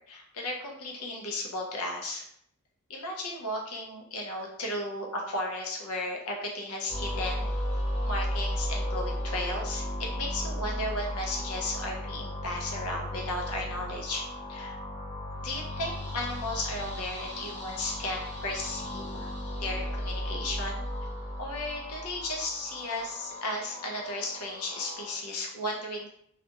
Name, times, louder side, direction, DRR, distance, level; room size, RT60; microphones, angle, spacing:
voice 1, 0.1-2.2 2.9-7.5 8.0-14.2 14.5-14.8 15.4-19.3 19.6-20.8 21.4-26.1, left 1 dB, 75° left, 0 dB, 0.7 m, -35 dB
sound 1, 6.9-25.2, equal, 30° left, 0.8 m, -35 dB
2.4 x 2.1 x 2.8 m, 0.69 s
head